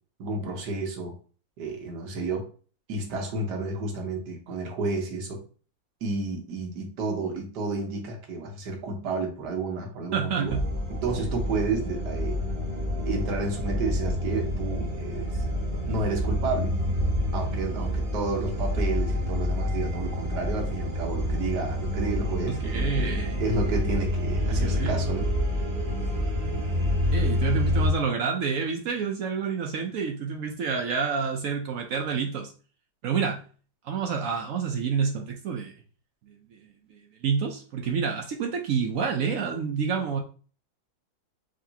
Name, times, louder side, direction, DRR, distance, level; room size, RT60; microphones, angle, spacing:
voice 1, 0.2-1.1 1.6-2.5 2.9-5.4 6.0-10.6 11.0-12.4 13.0-15.4 15.9-16.7 17.3-23.1 23.4-25.3, right 3 dB, 65° right, 2 dB, 1.5 m, -31 dB
voice 2, 10.1-10.6 22.5-23.4 24.5-25.0 26.1-26.2 27.0-32.5 33.0-33.4 33.8-35.7 36.3-40.2, right 6 dB, 80° right, 2 dB, 0.7 m, -29 dB
sound 1, 10.5-27.9, left 1 dB, 35° right, 0.8 m, -28 dB
5.1 x 3.0 x 2.8 m, 0.40 s
omnidirectional pair, 2.1 m